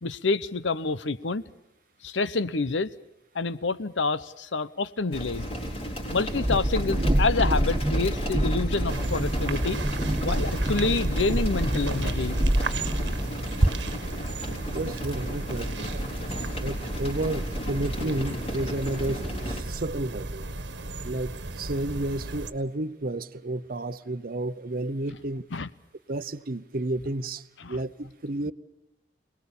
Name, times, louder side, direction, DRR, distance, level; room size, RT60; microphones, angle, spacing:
voice 1, 0.0-1.4 2.0-2.9 3.3-5.5 6.1-9.8 10.2-12.9 13.2-13.4 25.5-25.7 27.6-27.8, left 3 dB, 90° left, 0.9 m, -28 dB
sound 1, 5.1-19.6, equal, 35° left, 3.9 m, -34 dB
Train, 6.3-13.2, right 1 dB, 25° right, 1.6 m, -27 dB
sound 2, 8.9-22.5, right 2 dB, 75° right, 1.4 m, -33 dB
voice 2, 14.7-16.0 16.6-20.5 21.0-25.4 26.1-28.5, right 2 dB, 50° right, 0.8 m, -31 dB
27.5 x 19.5 x 7.1 m
head